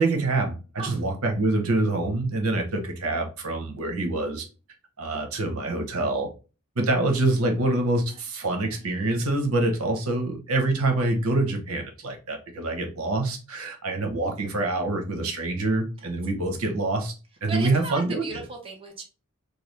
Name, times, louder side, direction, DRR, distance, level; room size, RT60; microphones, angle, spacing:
voice 1, 0.0-4.4 5.0-6.3 6.8-17.1 17.4-18.4, right 2 dB, 75° right, 0.8 m, -26 dB
voice 2, 17.5-19.0, right 3 dB, 25° right, 0.6 m, -35 dB
3.2 x 2.3 x 3.2 m
head